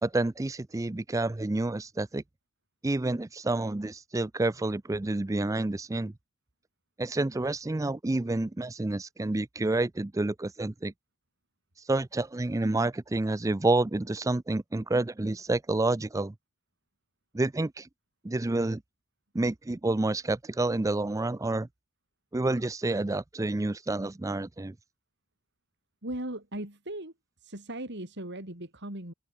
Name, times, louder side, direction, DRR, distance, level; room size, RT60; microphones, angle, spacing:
voice 1, 0.0-2.2 2.8-6.1 7.0-10.9 11.9-16.3 17.3-17.9 18.2-18.8 19.3-21.7 22.3-24.7, right 2 dB, 15° right, 0.4 m, -29 dB
voice 2, 26.0-27.1 27.4-29.1, right 1 dB, 55° right, 5.5 m, -38 dB
head